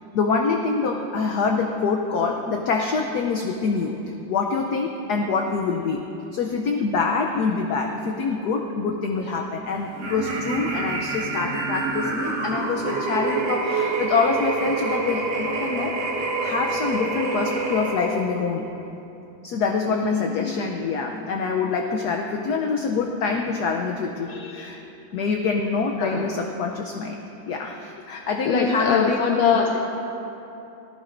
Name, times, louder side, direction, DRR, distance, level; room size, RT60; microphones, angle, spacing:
voice 1, 0.1-3.9 4.3-6.0 6.3-18.6 19.4-24.8 25.1-29.2 29.5-29.8, left 4 dB, 65° left, 2 dB, 1.1 m, -25 dB
sound 1, 10.0-18.3, right 3 dB, 55° right, 2.2 m, -27 dB
voice 2, 19.9-20.6 24.2-24.7 26.0-26.3 28.4-29.8, left 6 dB, 85° left, 1 dB, 1.6 m, -23 dB
18.0 x 15.0 x 2.6 m, 2.9 s
omnidirectional pair, 2.2 m